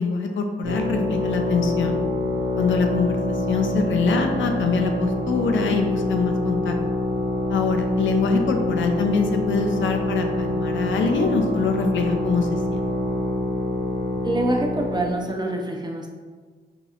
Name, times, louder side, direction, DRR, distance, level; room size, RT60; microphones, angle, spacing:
voice 1, 0.0-2.0 2.6-6.8 7.5-12.9, left 4 dB, 85° left, 4 dB, 0.4 m, -24 dB
sound 1, 0.6-15.1, left 2 dB, 70° right, 0.8 m, -26 dB
voice 2, 14.2-16.1, right 1 dB, 20° right, 1 dB, 0.6 m, -25 dB
4.0 x 2.8 x 2.4 m, 1.5 s
cardioid pair, 60°, 19 cm